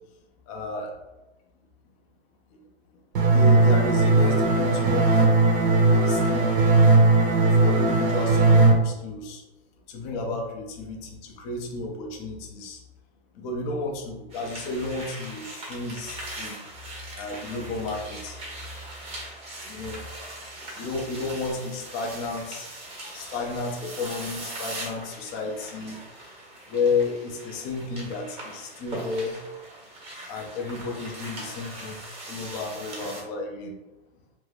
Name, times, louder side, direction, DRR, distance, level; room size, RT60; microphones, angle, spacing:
voice 1, 0.5-0.9 3.2-5.4 5.9-6.6 7.6-9.4 9.9-12.8 13.4-16.6 17.2-18.4 19.7-20.0 20.8-22.7 23.1-26.0 26.7-29.3 30.3-32.0 32.3-33.7, left 3 dB, 25° left, 1 dB, 0.4 m, -32 dB
sound 1, 3.2-8.7, right 3 dB, 55° right, 0.7 m, -18 dB
sound 2, 14.3-33.2, right 1 dB, 20° right, 0.6 m, -40 dB
2.5 x 2.3 x 3.3 m, 1.0 s
hypercardioid pair, 140°, 32 cm